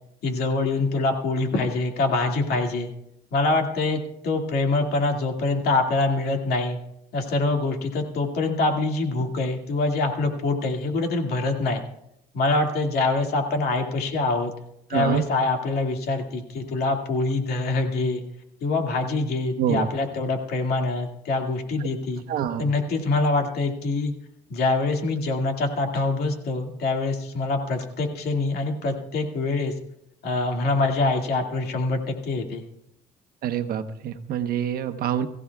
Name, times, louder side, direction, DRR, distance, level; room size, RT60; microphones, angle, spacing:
voice 1, 0.2-2.9 3.3-6.8 7.1-11.8 12.3-14.5 14.9-18.2 18.6-22.2 22.6-24.1 24.5-29.7 30.2-32.7, left 3 dB, 70° left, 3 dB, 2.2 m, -25 dB
voice 2, 14.9-15.2 19.6-19.9 21.8-21.9 22.3-22.6 33.4-35.3, right 9 dB, 65° right, 7 dB, 1.0 m, -26 dB
23.0 x 15.0 x 2.4 m, 0.80 s
cardioid pair, 110°, 17 cm